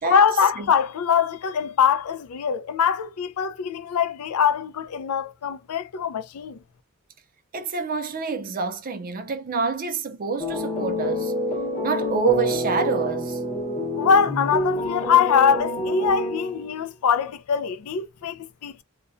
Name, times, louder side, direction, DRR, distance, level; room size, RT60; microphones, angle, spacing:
voice 1, 0.0-6.6 14.0-18.8, left 7 dB, 85° left, 0.4 m, -23 dB
voice 2, 7.5-11.3 11.8-13.4, right 5 dB, 40° right, 0.5 m, -27 dB
sound 1, 10.4-16.8, left 1 dB, 30° left, 0.8 m, -27 dB
2.3 x 2.1 x 2.5 m
head